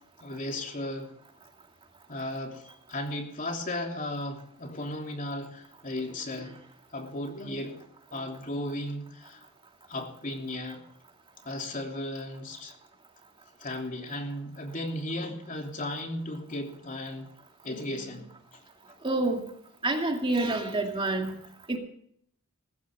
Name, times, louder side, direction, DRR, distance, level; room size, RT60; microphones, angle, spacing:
voice 1, 0.2-1.1 2.1-2.6 2.9-6.6 6.9-9.4 9.9-10.8 11.4-12.7 13.6-17.3 17.6-18.6 21.1-21.3, left 1 dB, 40° left, 2 dB, 3.2 m, -35 dB
voice 2, 19.0-19.4 19.8-21.4 21.7-21.8, right 2 dB, 25° right, 3 dB, 2.5 m, -27 dB
19.5 x 15.5 x 3.6 m, 0.66 s
head